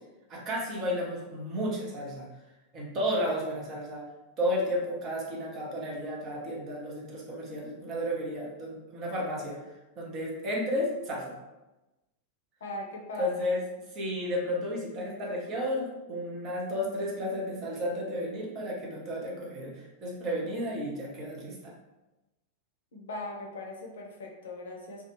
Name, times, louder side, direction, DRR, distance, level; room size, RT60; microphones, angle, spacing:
voice 1, 0.3-2.3 2.7-4.0 4.4-11.3 13.2-13.6 13.9-21.7, equal, 35° right, -3 dB, 0.8 m, -33 dB
voice 2, 12.6-13.6 22.9-25.1, left 2 dB, 65° left, -1 dB, 0.5 m, -39 dB
2.3 x 2.3 x 3.0 m, 1.0 s
figure-of-eight pair, 90°, 0 cm